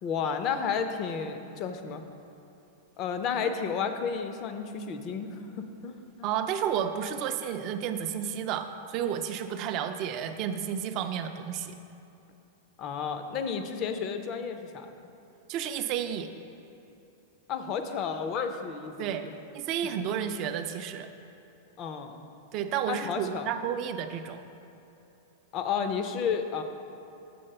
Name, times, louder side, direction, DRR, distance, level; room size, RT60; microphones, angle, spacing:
voice 1, 0.0-2.0 3.0-6.3 12.8-14.9 17.5-19.3 21.8-22.2 22.9-23.5 25.5-26.6, left 6 dB, 35° left, 7 dB, 0.5 m, -32 dB
voice 2, 6.2-11.7 15.5-16.3 19.0-19.2 19.5-21.1 22.5-24.4, right 9 dB, 40° right, 7 dB, 0.4 m, -31 dB
7.7 x 3.9 x 6.7 m, 2.9 s
supercardioid pair, 155°, 0 cm